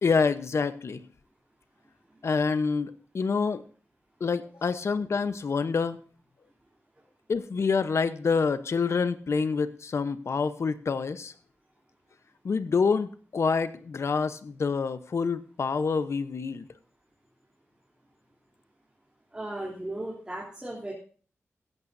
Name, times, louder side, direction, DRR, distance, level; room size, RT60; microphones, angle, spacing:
voice 1, 0.0-1.0 2.2-3.6 4.2-6.0 7.3-11.3 12.4-16.7, left 5 dB, 60° left, 12 dB, 0.9 m, -27 dB
voice 2, 19.3-20.9, right 1 dB, 15° right, -5 dB, 3.2 m, -36 dB
15.5 x 14.5 x 2.7 m, 0.42 s
wide cardioid pair, 125°, 5 cm